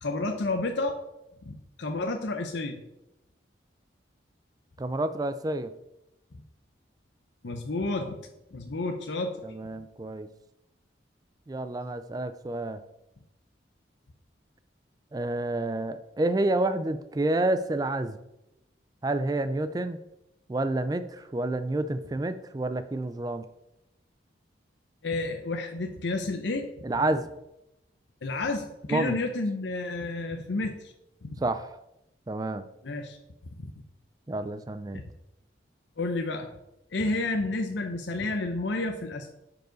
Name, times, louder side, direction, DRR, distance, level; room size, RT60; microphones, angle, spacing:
voice 1, 0.0-1.0 1.5-2.8 7.4-8.2 8.5-9.3 25.0-26.7 28.2-30.9 31.2-31.3 32.8-33.2 33.6-33.7 34.9-35.0 36.0-36.5 36.9-39.3, left 2 dB, 70° left, 4 dB, 0.7 m, -30 dB
voice 2, 4.8-5.7 9.4-10.3 11.5-12.8 15.1-18.2 19.0-20.0 20.5-23.4 26.8-27.3 28.9-29.2 31.4-31.7 32.3-32.6 34.3-35.0, right 2 dB, 20° right, 11 dB, 0.3 m, -29 dB
9.7 x 4.7 x 3.9 m, 0.89 s
head